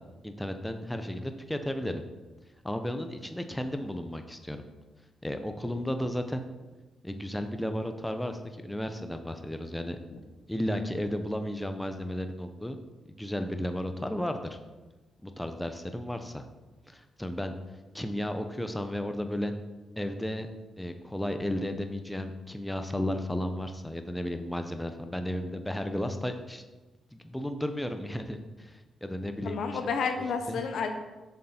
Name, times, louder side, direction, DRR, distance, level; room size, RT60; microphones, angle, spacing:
voice 1, 0.2-2.0 2.6-4.6 5.2-6.4 7.0-10.0 10.5-12.8 13.1-14.6 15.2-16.4 16.9-17.5 17.9-19.5 20.0-20.5 20.8-26.6 27.1-29.6 30.5-30.6, left 1 dB, 5° left, 7 dB, 0.7 m, -33 dB
voice 2, 29.4-30.9, left 5 dB, 75° left, 5 dB, 1.0 m, -30 dB
7.3 x 6.6 x 4.3 m, 1.2 s
cardioid pair, 80°, 0 cm